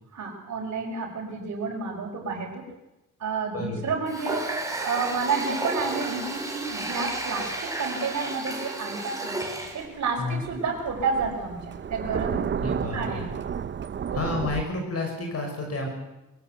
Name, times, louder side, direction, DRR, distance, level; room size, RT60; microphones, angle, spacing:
voice 1, 0.1-2.6 3.2-4.4 4.8-9.4 9.7-12.4 12.9-13.3 14.1-14.4, right 4 dB, 55° right, -4 dB, 5.2 m, -30 dB
voice 2, 3.5-3.9 10.2-10.4 12.6-13.3 14.1-15.9, left 3 dB, 50° left, 3 dB, 5.8 m, -30 dB
Water tap faucet, 4.1-9.9, right 2 dB, 10° right, 4.6 m, -32 dB
Thunder, 9.7-14.6, right 7 dB, 35° right, 0.7 m, -32 dB
22.5 x 16.0 x 8.0 m, 0.98 s
cardioid pair, 105°, 31 cm